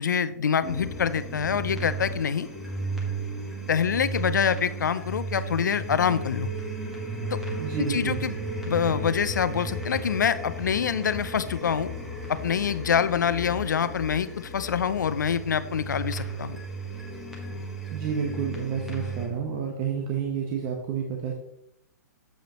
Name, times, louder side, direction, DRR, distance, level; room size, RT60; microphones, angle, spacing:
voice 1, 0.0-2.5 3.7-6.5 7.3-7.4 7.9-8.4 8.6-11.9 12.3-16.6, left 7 dB, 80° left, 14 dB, 0.6 m, -26 dB
sound 1, 0.6-19.3, right 2 dB, ahead, 1.6 m, -34 dB
voice 2, 7.5-8.2 17.9-21.3, right 7 dB, 35° right, 0 dB, 1.2 m, -30 dB
7.8 x 6.4 x 3.1 m, 0.77 s
hypercardioid pair, 125°, 10 cm